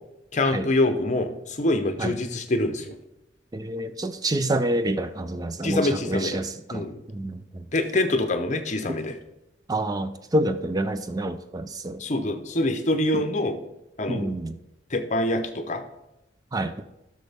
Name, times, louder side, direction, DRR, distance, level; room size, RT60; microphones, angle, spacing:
voice 1, 0.3-2.9 5.6-6.4 6.7-7.0 7.7-9.2 12.0-13.6 14.0-14.3 14.9-15.8, left 2 dB, 40° left, 7 dB, 0.8 m, -25 dB
voice 2, 3.5-7.7 9.7-12.0 14.1-14.6 16.5-16.7, right 1 dB, 20° right, 10 dB, 0.4 m, -28 dB
12.0 x 6.3 x 3.5 m, 0.92 s
head